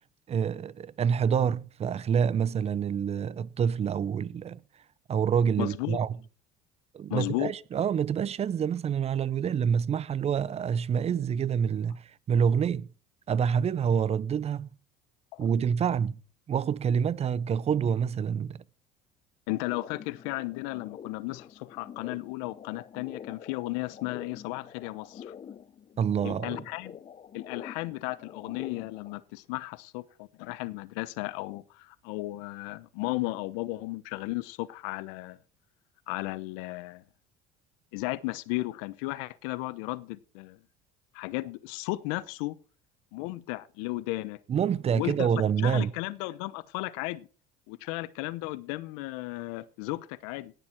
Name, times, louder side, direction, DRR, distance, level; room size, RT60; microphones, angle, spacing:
voice 1, 0.3-4.6 5.1-6.1 6.9-12.9 13.3-14.7 15.4-16.2 16.5-18.6 26.0-26.6 44.5-45.9, right 7 dB, 35° right, 0.6 m, -27 dB
voice 2, 5.6-6.0 7.1-7.5 15.3-15.4 19.5-25.3 26.2-27.0 27.3-35.4 36.1-37.0 37.9-40.6 41.1-42.5 43.1-44.4 44.9-47.3 47.7-50.5, left 20 dB, 75° left, 0.9 m, -35 dB
sound 1, 19.7-29.1, left 8 dB, 35° left, 0.9 m, -46 dB
18.0 x 7.2 x 4.5 m
supercardioid pair, 85°, 18 cm